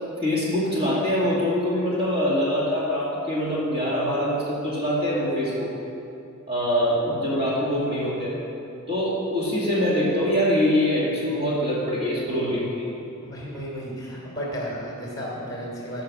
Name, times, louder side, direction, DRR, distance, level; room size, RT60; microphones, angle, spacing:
voice 1, 0.2-5.7 6.5-8.3 8.9-12.9, equal, 25° right, -7 dB, 2.3 m, -24 dB
voice 2, 13.2-16.0, equal, 15° left, -5 dB, 3.1 m, -33 dB
15.0 x 5.8 x 6.2 m, 2.8 s
head